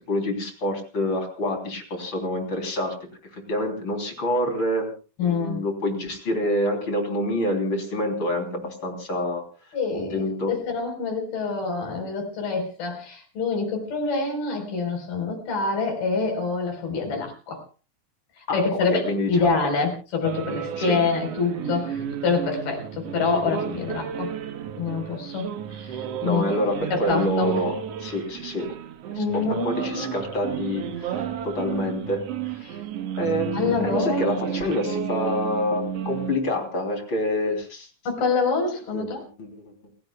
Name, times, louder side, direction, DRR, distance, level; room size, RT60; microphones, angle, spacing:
voice 1, 0.1-3.0 3.3-4.9 5.2-9.4 9.9-10.5 18.5-18.6 18.9-19.5 20.8-21.0 26.2-28.7 29.2-32.2 33.2-37.9 38.9-39.1 39.4-39.6, left 1 dB, 35° left, 3 dB, 3.9 m, -27 dB
voice 2, 5.2-5.6 9.7-17.6 18.4-19.0 19.3-24.4 24.8-26.4 26.9-27.5 29.2-30.1 32.6-32.8 33.5-34.5 38.1-39.2, left 4 dB, 85° left, 3 dB, 6.4 m, -26 dB
sound 1, 20.2-36.4, right 8 dB, 60° right, 1.7 m, -32 dB
29.0 x 16.0 x 2.3 m, 0.34 s
omnidirectional pair, 4.1 m